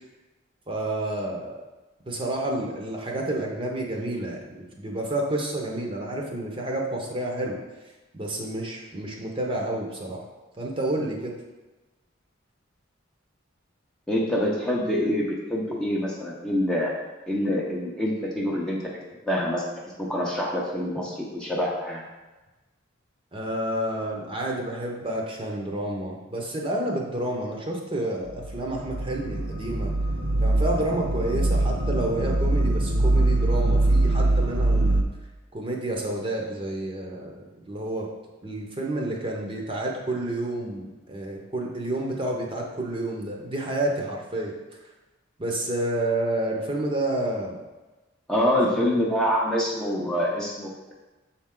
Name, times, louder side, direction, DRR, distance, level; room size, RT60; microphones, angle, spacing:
voice 1, 0.7-1.5 2.1-7.6 8.1-10.3 10.6-11.3 23.3-29.9 30.4-35.1 35.5-38.1 38.4-44.5 45.4-47.6, right 1 dB, 25° right, -1 dB, 0.9 m, -29 dB
voice 2, 14.1-16.9 17.3-19.0 19.3-19.6 20.0-22.0 48.3-50.9, equal, 5° left, -4 dB, 0.7 m, -26 dB
sound 1, 28.3-35.0, right 2 dB, 60° right, 0.6 m, -23 dB
7.0 x 4.4 x 3.7 m, 1.2 s
head